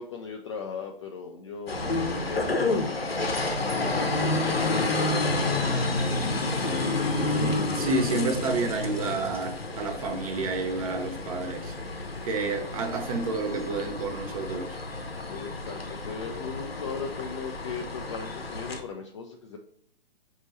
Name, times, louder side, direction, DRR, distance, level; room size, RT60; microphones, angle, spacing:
voice 1, 0.0-2.9 3.9-5.7 15.3-19.6, left 5 dB, 30° left, 0.4 m, -37 dB
sound 1, 1.7-18.8, left 2 dB, 85° left, 0.8 m, -30 dB
voice 2, 7.4-11.7 12.2-14.8, right 3 dB, 40° right, 0.7 m, -30 dB
5.0 x 2.7 x 3.1 m
figure-of-eight pair, 120°, 29 cm